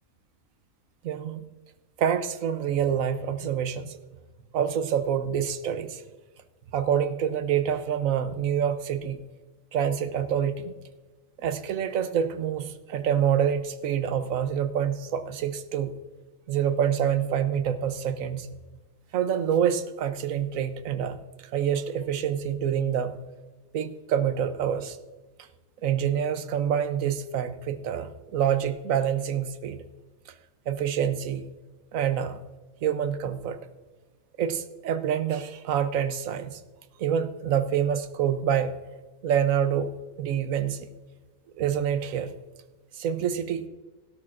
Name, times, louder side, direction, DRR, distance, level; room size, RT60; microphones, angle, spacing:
voice 1, 1.0-1.5 2.0-4.0 4.5-6.0 6.7-9.2 9.7-10.8 11.4-15.9 16.5-18.5 19.1-21.2 21.5-23.2 23.7-25.0 25.8-29.8 30.7-31.4 31.9-32.4 32.8-33.6 34.4-36.6 37.0-38.8 39.2-39.9 40.2-40.9 41.6-42.3 42.9-43.7, right 8 dB, 90° right, 10 dB, 1.2 m, -26 dB
16.5 x 12.5 x 2.5 m, 1.3 s
omnidirectional pair, 1.4 m